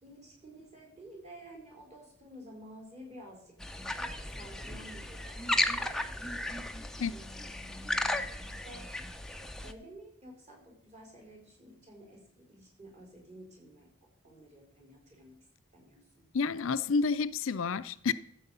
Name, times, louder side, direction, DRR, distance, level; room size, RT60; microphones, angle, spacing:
voice 1, 0.0-3.5 3.9-6.5 7.1-8.3 8.6-8.9 9.6-13.9 14.2-15.4 15.7-16.2, right 1 dB, 30° right, -1 dB, 4.1 m, -52 dB
sound 1, 3.6-9.7, left 1 dB, ahead, 0.6 m, -35 dB
voice 2, 16.3-18.1, left 5 dB, 70° left, 13 dB, 0.5 m, -29 dB
13.5 x 7.6 x 5.5 m, 0.73 s
head